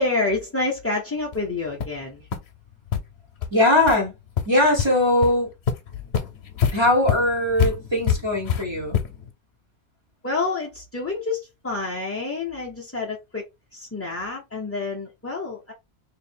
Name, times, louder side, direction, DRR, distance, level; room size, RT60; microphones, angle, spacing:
voice 1, 0.0-2.3 10.2-13.5 13.7-15.7, left 3 dB, 20° left, 0.5 m, -28 dB
sound 1, 1.3-1.4 1.8-2.0 2.3-2.4 2.9-3.0 3.4-3.5 3.9-4.0 4.4-4.9 5.2-5.3 5.7-9.3, left 7 dB, 75° left, 0.9 m, -26 dB
voice 2, 3.5-4.1 4.4-5.5 6.7-9.0, left 1 dB, 25° right, 1.2 m, -20 dB
2.7 x 2.5 x 4.2 m
omnidirectional pair, 1.1 m